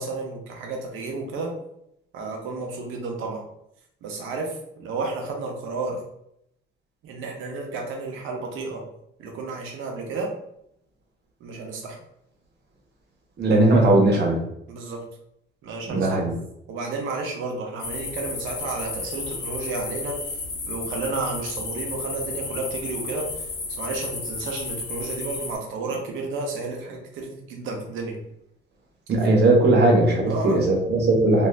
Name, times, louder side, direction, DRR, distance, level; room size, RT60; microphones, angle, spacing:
voice 1, 0.0-1.5 2.1-3.4 4.0-6.0 7.0-8.8 9.2-10.3 11.4-12.0 14.7-15.0 15.6-16.2 16.7-20.3 20.7-28.2 30.3-30.6, right 3 dB, 90° right, 1 dB, 0.7 m, -32 dB
voice 2, 13.4-14.4 15.9-16.3 29.1-31.5, right 2 dB, 55° right, 0 dB, 1.0 m, -18 dB
sound 1, 17.8-25.6, left 4 dB, 85° left, 0.8 m, -33 dB
2.6 x 2.4 x 3.2 m, 0.78 s
cardioid pair, 90°, 20 cm